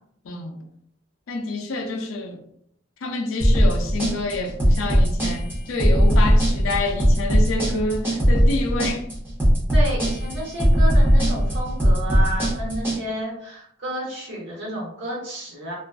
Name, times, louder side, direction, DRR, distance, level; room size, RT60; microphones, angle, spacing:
voice 1, 0.2-0.6 1.3-2.4 3.0-9.1, left 2 dB, 85° left, 0.4 m, -28 dB
sound 1, 3.4-13.0, equal, 10° right, 0.7 m, -18 dB
voice 2, 9.7-15.7, right 1 dB, 60° right, 1.0 m, -31 dB
2.4 x 2.2 x 2.3 m
head